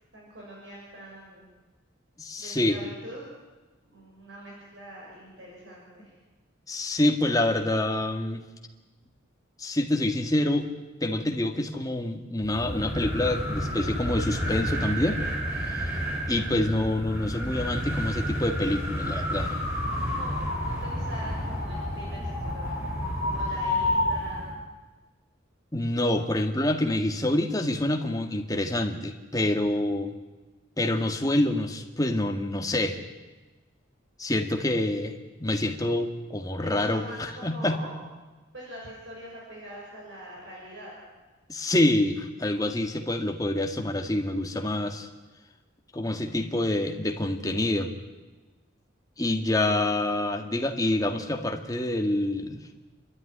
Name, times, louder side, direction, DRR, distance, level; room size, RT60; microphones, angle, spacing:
voice 1, 0.1-1.4 2.4-3.2 3.9-6.1 20.1-24.6 36.6-38.0 38.5-41.0, right 1 dB, 60° right, -3 dB, 6.7 m, -43 dB
voice 2, 2.2-2.8 6.7-8.4 9.6-10.7 11.0-15.2 15.7-15.9 16.3-19.6 25.7-30.1 30.8-33.0 34.2-37.8 41.5-45.1 45.9-47.9 49.2-52.6, left 1 dB, 15° left, 4 dB, 1.9 m, -27 dB
sound 1, 12.4-24.6, equal, 15° right, 6.5 m, -30 dB
30.0 x 13.0 x 10.0 m, 1.2 s
head